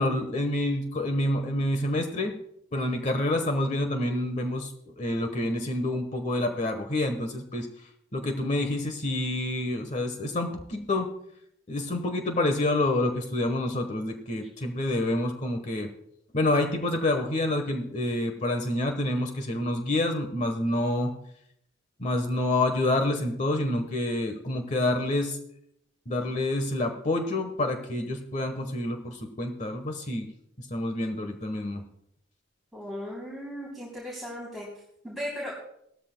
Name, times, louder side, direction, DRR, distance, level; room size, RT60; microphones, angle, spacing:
voice 1, 0.0-2.3 2.7-4.7 5.0-7.7 8.1-11.1 11.7-15.9 16.3-21.1 22.0-25.4 26.1-30.3 30.6-31.8, left 1 dB, 40° left, 6 dB, 1.2 m, -28 dB
voice 2, 32.7-34.7 35.0-35.5, equal, ahead, -4 dB, 3.3 m, -36 dB
17.5 x 13.5 x 2.2 m, 0.74 s
head